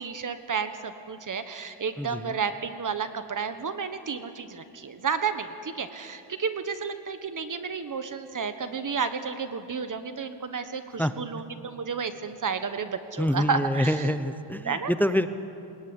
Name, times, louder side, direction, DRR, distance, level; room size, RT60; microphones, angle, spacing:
voice 1, 0.0-14.1 14.6-14.9, right 5 dB, 40° right, 9 dB, 1.3 m, -31 dB
voice 2, 2.0-2.4 11.0-11.1 13.2-15.3, equal, 5° left, 10 dB, 0.8 m, -26 dB
21.5 x 21.0 x 9.8 m, 2.6 s
cardioid pair, 125°, 46 cm